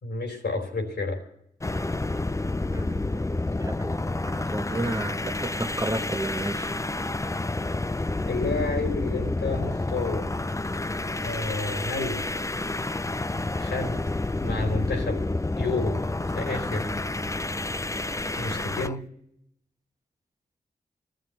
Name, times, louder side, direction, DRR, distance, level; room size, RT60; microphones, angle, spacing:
voice 1, 0.0-1.2 8.2-10.3 11.2-12.2 13.6-14.0 14.4-15.2 15.6-16.0 16.3-17.0 18.4-19.0, left 3 dB, 85° left, 4 dB, 3.6 m, -30 dB
sound 1, 1.6-19.0, left 2 dB, 20° left, 0.5 m, -29 dB
voice 2, 2.7-3.3 3.6-4.0 4.3-6.7, right 1 dB, 20° right, 7 dB, 1.2 m, -32 dB
15.0 x 11.5 x 7.9 m, 0.75 s
cardioid pair, 40°, 17 cm